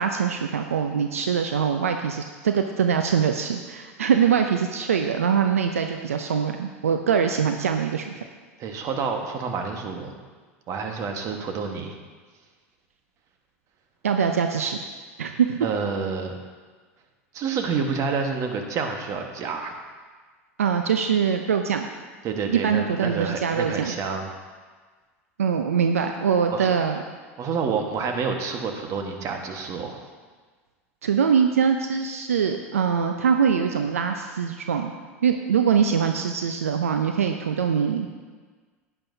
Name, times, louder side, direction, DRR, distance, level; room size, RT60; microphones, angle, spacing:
voice 1, 0.0-8.2 14.0-14.8 15.2-15.7 20.6-21.9 22.5-24.0 25.4-27.0 31.0-34.9 35.2-38.1, right 7 dB, 85° right, 5 dB, 0.5 m, -23 dB
voice 2, 8.6-10.2 10.7-12.0 15.6-16.4 17.3-19.7 22.2-24.3 26.5-26.7 27.4-30.0, right 5 dB, 45° right, 4 dB, 1.4 m, -28 dB
10.5 x 9.8 x 2.7 m, 1.5 s
hypercardioid pair, 85°, 7 cm